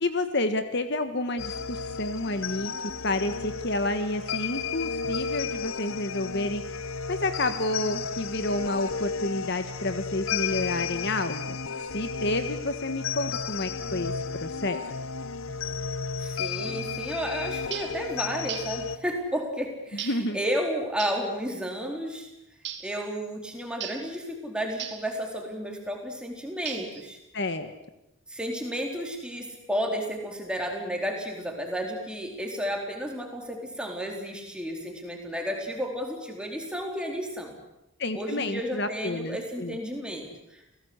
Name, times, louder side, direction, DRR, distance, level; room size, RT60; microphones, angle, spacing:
voice 1, 0.0-2.7 3.0-6.6 7.1-11.4 11.9-14.1 14.4-14.8 20.0-20.4 27.3-27.7 38.0-39.8, left 2 dB, 55° left, 9 dB, 1.4 m, -29 dB
sound 1, 1.4-19.0, left 5 dB, 75° left, 1.2 m, -33 dB
voice 2, 16.2-22.3 22.8-27.2 28.3-37.6 38.1-40.6, equal, 5° right, 1 dB, 4.2 m, -32 dB
sound 2, 17.7-18.0 18.5-18.8 20.0-20.3 21.0-21.3 22.6-22.9 23.8-24.1 24.8-25.1 26.7-27.1, right 9 dB, 55° right, 2.5 m, -37 dB
29.0 x 18.0 x 8.1 m, 0.88 s
head